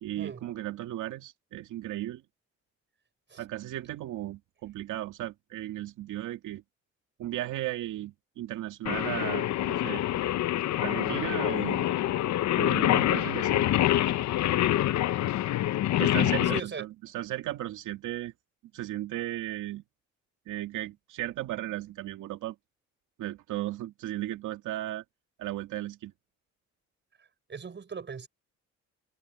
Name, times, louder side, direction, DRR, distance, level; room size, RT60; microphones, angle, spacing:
voice 1, 0.0-2.2 3.4-6.6 7.2-10.0 10.8-11.9 12.5-13.7 15.9-16.9 17.1-18.3 18.7-19.8 20.5-22.6 23.2-25.0 25.4-26.1, right 14 dB, 85° right, 2.3 m, -35 dB
Singing, 8.9-16.6, left 13 dB, 65° left, 0.7 m, -26 dB
voice 2, 16.5-16.9 27.2-28.3, right 6 dB, 35° right, 6.0 m, -39 dB
cardioid pair, 90°, 30 cm